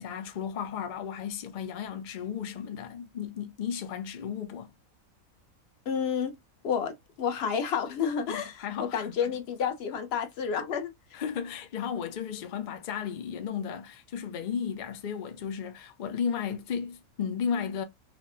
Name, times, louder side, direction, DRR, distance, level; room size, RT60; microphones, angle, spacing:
voice 1, 0.0-4.7 8.3-9.2 11.1-17.8, left 7 dB, 85° left, 0.4 m, -34 dB
voice 2, 5.9-6.3 6.6-10.9, left 7 dB, 60° left, 0.7 m, -30 dB
4.2 x 2.1 x 2.5 m
omnidirectional pair, 1.5 m